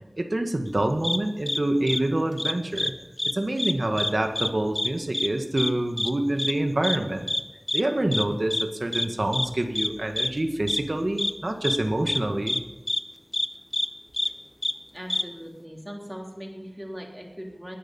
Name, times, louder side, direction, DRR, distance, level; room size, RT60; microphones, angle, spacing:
voice 1, 0.2-2.9 3.3-7.3 7.7-12.6, right 1 dB, 60° right, 5 dB, 1.8 m, -26 dB
sound 1, 1.0-1.2 1.5-1.6 1.9-2.0 2.4-2.9 3.2-3.3 3.6-4.1 4.4-4.5 4.8-4.9 5.1-5.3 5.6-5.7 6.0-6.1 6.4-6.5 6.8-7.0 7.3-7.4 7.7-7.8 8.1-8.2 8.5-8.6 8.9-9.1 9.3-9.5 9.8-9.9 10.2-10.3 10.7-10.8 11.2-11.3 11.6-11.8 12.1-12.2 12.5-12.6 12.9-13.0 13.3-13.5 13.7-13.9 14.1-14.3 14.6-14.7 15.1-15.2, left 1 dB, 35° left, 0.8 m, -26 dB
voice 2, 14.9-17.8, equal, 10° right, 0 dB, 3.5 m, -39 dB
20.0 x 10.5 x 5.5 m, 1.1 s
wide cardioid pair, 50°, 0 cm